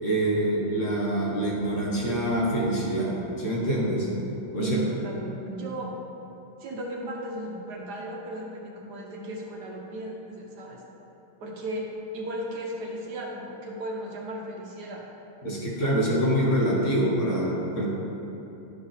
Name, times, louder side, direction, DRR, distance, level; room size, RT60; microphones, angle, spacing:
voice 1, 0.0-4.1 4.5-4.8 15.4-17.9, right 1 dB, 40° left, -5 dB, 1.6 m, -25 dB
voice 2, 4.6-6.0 6.6-10.8 11.4-15.1, right 1 dB, 55° right, -2 dB, 1.5 m, -35 dB
12.0 x 5.2 x 3.5 m, 3.0 s
omnidirectional pair, 2.4 m